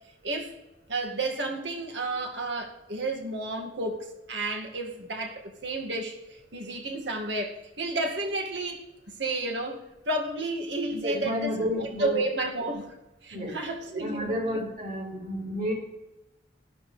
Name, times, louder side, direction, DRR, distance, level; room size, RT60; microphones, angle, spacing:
voice 1, 0.9-8.8 9.2-9.8 10.1-12.9 13.2-14.6, right 2 dB, 75° right, 2 dB, 2.3 m, -31 dB
voice 2, 11.0-12.2 13.3-13.6 14.0-15.7, equal, 50° right, -1 dB, 4.9 m, -31 dB
17.0 x 12.0 x 3.4 m, 0.97 s
head